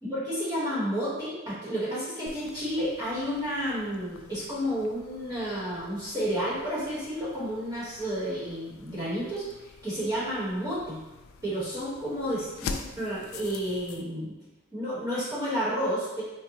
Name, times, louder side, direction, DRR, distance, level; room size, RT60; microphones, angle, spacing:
voice 1, 0.0-11.0 11.4-14.3 14.7-16.2, equal, 20° right, -10 dB, 1.2 m, -31 dB
sound 1, 2.3-14.0, left 5 dB, 85° left, 0.3 m, -45 dB
3.6 x 2.3 x 2.8 m, 1.1 s
head